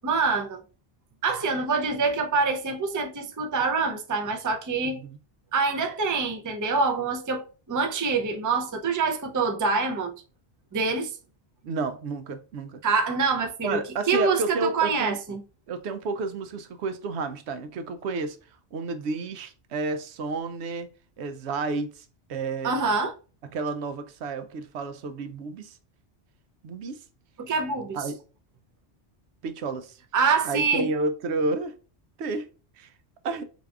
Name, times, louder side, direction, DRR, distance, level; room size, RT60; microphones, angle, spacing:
voice 1, 0.0-0.6 1.2-5.0 5.5-10.1 10.7-11.1 12.8-13.8 14.1-15.4 22.6-23.1 27.4-28.0 30.1-30.9, right 4 dB, 30° right, 0.4 m, -25 dB
voice 2, 4.8-5.2 11.6-12.8 13.6-15.2 15.7-18.4 18.7-20.9 21.2-22.8 23.4-25.8 26.6-27.0 27.9-28.2 29.4-30.0 30.4-31.7 32.2-32.5 32.8-32.9 33.2-33.5, right 3 dB, 85° right, 0.9 m, -31 dB
4.1 x 3.5 x 2.3 m
omnidirectional pair, 1.1 m